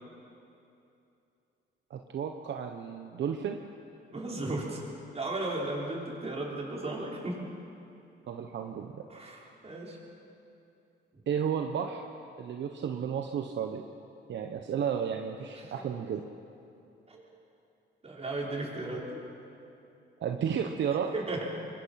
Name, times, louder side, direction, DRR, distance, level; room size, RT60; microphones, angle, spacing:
voice 1, 1.9-3.6 8.3-9.0 11.3-12.0 12.4-13.8 14.3-16.2 20.2-21.1, right 7 dB, 65° right, 4 dB, 1.3 m, -32 dB
voice 2, 4.1-4.8 5.1-7.4 9.1-10.0 11.1-11.2 15.5-15.8 17.1-17.3 18.0-19.2 21.1-21.4, right 2 dB, 30° right, -3 dB, 5.9 m, -35 dB
25.5 x 22.0 x 6.0 m, 2.7 s
cardioid pair, 90°, 20 cm